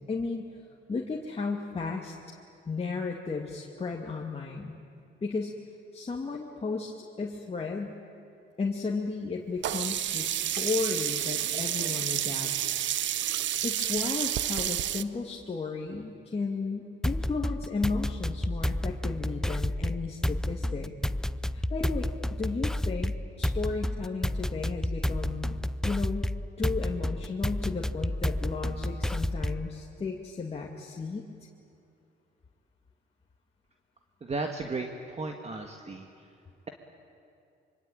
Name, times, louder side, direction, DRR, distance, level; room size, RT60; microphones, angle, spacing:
voice 1, 0.1-0.5 0.9-2.1 2.7-4.8 5.2-5.6 5.9-8.0 8.6-12.7 13.6-20.9 21.5-25.6 25.8-26.3 26.6-31.3, left 4 dB, 30° left, -1 dB, 2.3 m, -34 dB
Sink (filling or washing), 9.6-15.0, right 12 dB, 65° right, 0.8 m, -30 dB
sound 1, 17.0-29.7, left 1 dB, 5° left, 0.6 m, -30 dB
voice 2, 34.2-36.1, right 3 dB, 35° right, 4 dB, 1.9 m, -34 dB
25.0 x 25.0 x 9.2 m, 2.6 s
cardioid pair, 90°, 20 cm